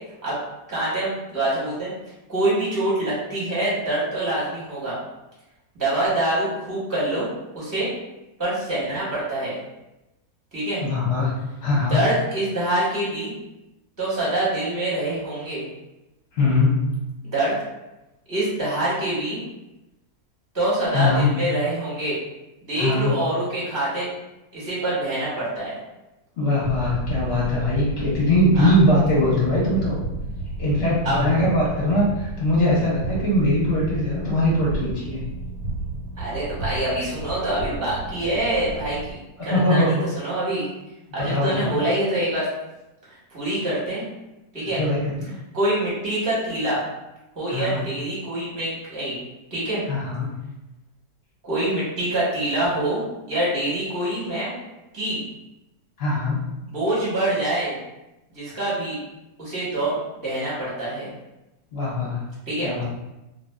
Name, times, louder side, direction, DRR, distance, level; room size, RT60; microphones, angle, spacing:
voice 1, 0.7-1.9 2.3-5.0 5.7-7.3 7.5-7.9 8.4-9.6 10.5-10.8 11.9-13.3 14.0-15.6 17.2-17.5 18.3-19.4 20.5-22.2 22.6-24.1 24.5-25.7 28.6-28.7 31.0-31.2 36.2-39.2 39.4-40.7 41.1-42.5 43.3-44.0 44.5-44.8 45.5-46.8 47.3-49.2 49.5-49.8 51.4-54.5 54.9-55.2 56.7-57.8 58.3-59.0 59.4-61.1 62.5-62.7, right 1 dB, 15° right, -9 dB, 0.8 m, -25 dB
voice 2, 10.8-12.0 16.3-17.0 20.9-21.4 22.7-23.1 26.4-30.0 30.6-35.2 39.4-40.1 41.2-41.7 44.7-45.3 47.5-47.8 49.9-50.3 56.0-56.4 61.7-62.3 62.6-62.8, left 1 dB, 50° left, -6 dB, 0.9 m, -21 dB
sound 1, 26.6-39.1, right 2 dB, 85° right, 1.2 m, -33 dB
2.5 x 2.5 x 2.2 m, 0.96 s
omnidirectional pair, 1.7 m